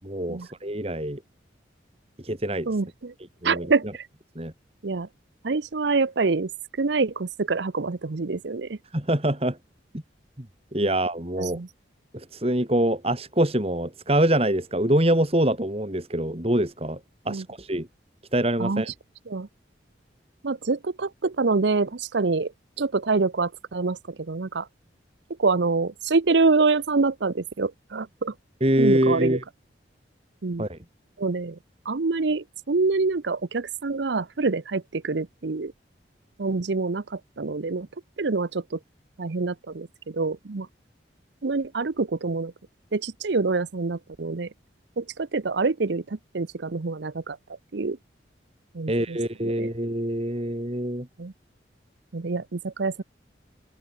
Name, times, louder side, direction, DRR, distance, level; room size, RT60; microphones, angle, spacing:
voice 1, 0.0-1.2 2.2-2.7 3.4-3.7 4.4-4.5 8.9-9.6 10.7-11.6 12.1-17.0 17.3-17.9 18.3-18.9 28.6-29.4 30.6-30.8 48.9-51.1, right 1 dB, 30° right, 2.5 m, -24 dB
voice 2, 2.7-3.1 3.4-4.1 4.8-5.1 5.4-6.5 6.8-8.8 10.8-10.9 11.3-11.7 17.3-17.5 18.6-18.9 19.3-19.5 20.4-22.5 22.8-24.7 25.4-28.3 28.8-29.4 30.4-30.7 31.2-31.6 31.9-35.7 36.4-37.9 38.2-38.8 39.2-40.7 41.4-42.5 42.9-44.5 45.0-47.4 47.7-48.0 48.7-49.2 49.4-49.7 51.2-51.3 52.1-53.0, right 3 dB, 70° right, 0.7 m, -26 dB
open air
head